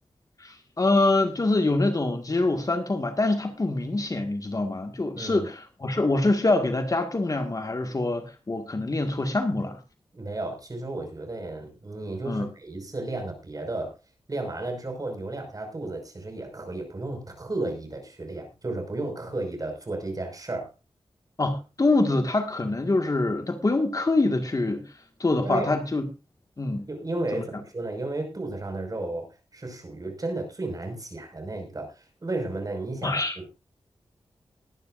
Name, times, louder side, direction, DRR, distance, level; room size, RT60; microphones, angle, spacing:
voice 1, 0.4-9.8 12.3-12.5 21.4-26.0 26.6-26.9 27.3-27.4 33.0-33.5, left 2 dB, 35° left, 1.9 m, -25 dB
voice 2, 5.2-5.5 10.1-14.0 14.3-20.7 25.4-25.7 26.9-33.2, right 2 dB, 40° right, 5.5 m, -33 dB
20.5 x 11.0 x 2.6 m
wide cardioid pair, 80°, 10 cm